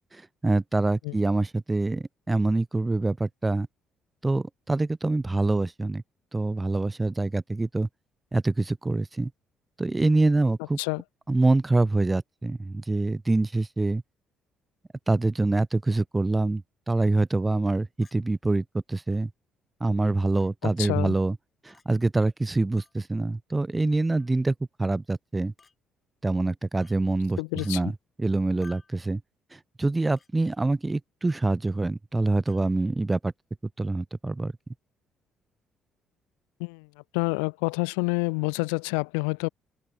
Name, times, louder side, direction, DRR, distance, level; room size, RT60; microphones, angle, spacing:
voice 1, 0.4-3.7 4.2-6.0 6.3-7.9 8.3-9.3 9.8-10.8 11.3-14.0 15.1-19.3 19.8-21.4 21.7-25.5 26.2-27.4 27.6-27.9 28.2-29.2 29.8-33.3 33.8-34.5, right 2 dB, 20° right, 0.8 m, -25 dB
Chink clink, 18.0-18.2 19.1-19.2 20.4-20.5 21.7-21.9 22.8-23.0 24.1-24.4 25.6-25.8 26.8-27.0 27.6-27.7 28.6-29.0 30.2-30.3 31.3-31.5 32.5-32.6, left 5 dB, 35° left, 4.7 m, -55 dB
voice 2, 20.6-21.2 27.4-27.9 36.6-36.9 37.1-39.5, left 40 dB or more, 90° left, 0.6 m, -28 dB
supercardioid pair, 65°, 0 cm